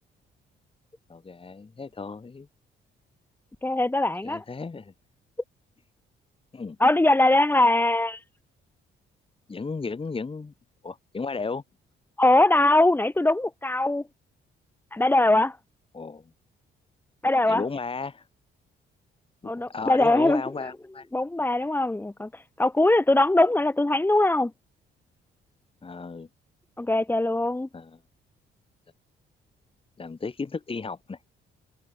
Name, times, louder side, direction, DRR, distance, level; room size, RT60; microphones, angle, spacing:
voice 1, 1.1-2.5 4.2-4.9 6.5-6.8 9.5-10.5 10.8-11.6 15.9-16.2 17.5-18.3 19.4-21.1 25.8-26.3 27.7-28.0 30.0-31.2, left 4 dB, 25° left, 2.4 m, -34 dB
voice 2, 3.6-4.4 6.8-8.2 12.2-14.0 14.9-15.6 17.2-17.6 19.5-20.4 21.1-22.3 22.6-24.5 26.8-27.7, left 2 dB, 10° left, 1.2 m, -21 dB
cardioid pair, 90°, 20 cm